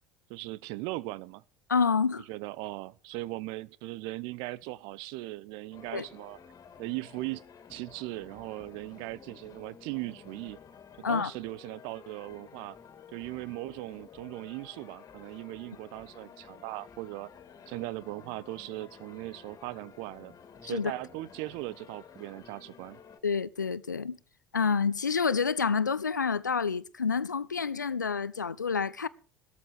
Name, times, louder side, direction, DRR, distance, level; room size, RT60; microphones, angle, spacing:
voice 1, 0.3-1.4 2.3-6.4 6.8-7.4 7.7-10.6 11.1-12.8 13.1-17.3 17.7-20.3 20.6-23.0, right 19 dB, 60° right, 0.7 m, -39 dB
voice 2, 1.7-2.2 5.9-6.1 11.0-11.3 20.6-20.9 23.2-24.2 24.5-29.1, left 5 dB, 85° left, 0.7 m, -28 dB
sound 1, 5.7-23.2, left 7 dB, 35° left, 2.7 m, -52 dB
15.5 x 13.5 x 4.9 m
figure-of-eight pair, 65°, 10 cm